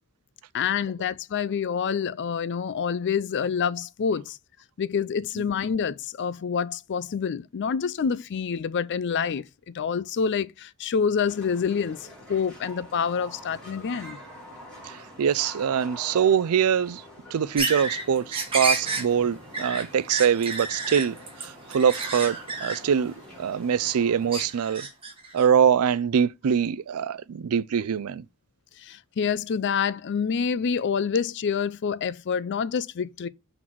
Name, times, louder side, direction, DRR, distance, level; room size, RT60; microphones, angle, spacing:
voice 1, 0.5-4.4 4.8-14.2 28.8-33.3, left 6 dB, 50° left, 0.4 m, -27 dB
sound 1, 11.2-24.5, equal, 5° left, 3.7 m, -46 dB
voice 2, 14.8-17.0 17.3-24.9 25.3-28.2, right 7 dB, 75° right, 0.4 m, -24 dB
sound 2, 17.6-23.9 24.3-25.4, right 3 dB, 25° right, 1.7 m, -31 dB
5.9 x 4.0 x 4.5 m
head